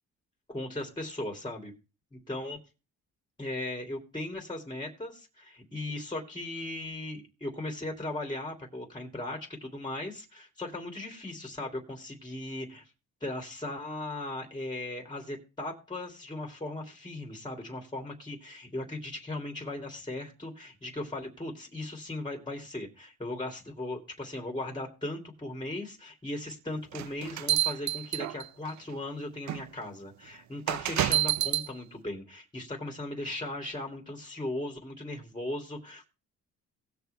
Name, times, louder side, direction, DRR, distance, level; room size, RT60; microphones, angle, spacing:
voice 1, 0.5-1.7 2.1-2.6 3.4-12.8 13.2-36.1, left 2 dB, 15° left, 2 dB, 3.1 m, -38 dB
sound 1, 26.9-28.7 29.5-29.6 30.7-31.7, right 13 dB, 70° right, 0.7 m, -28 dB
19.0 x 6.9 x 3.4 m, 0.31 s
cardioid pair, 90°, 30 cm